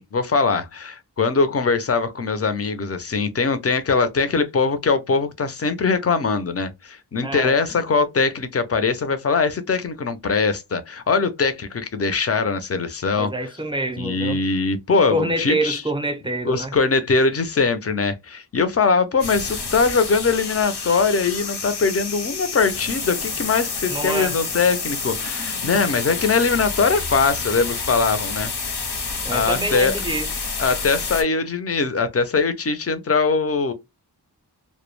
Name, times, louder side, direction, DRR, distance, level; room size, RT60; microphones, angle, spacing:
voice 1, 0.0-13.3 14.0-15.8 16.4-28.5 29.3-29.9 30.6-33.7, left 4 dB, 35° left, 0.5 m, -21 dB
voice 2, 7.2-7.6 13.1-14.4 15.1-16.7 23.9-24.4 29.2-30.3, right 1 dB, 15° right, 0.5 m, -26 dB
sound 1, 19.2-31.2, left 4 dB, 70° left, 0.7 m, -29 dB
2.1 x 2.1 x 3.0 m
wide cardioid pair, 55°, 41 cm